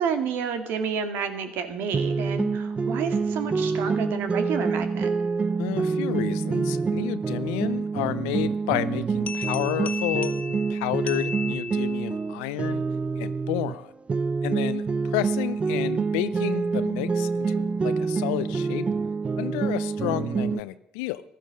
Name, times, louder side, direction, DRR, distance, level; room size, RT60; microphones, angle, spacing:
voice 1, 0.0-5.1, right 6 dB, 70° right, 8 dB, 2.0 m, -30 dB
sound 1, 1.9-13.8 14.1-20.6, right 4 dB, 35° right, 0.6 m, -27 dB
voice 2, 5.6-12.8 13.2-13.9 14.4-18.9 19.4-21.2, left 16 dB, 80° left, 14 dB, 0.5 m, -31 dB
sound 2, 9.3-12.2, left 6 dB, 40° left, 1.7 m, -35 dB
15.0 x 12.0 x 6.4 m, 0.86 s
hypercardioid pair, 55°, 4 cm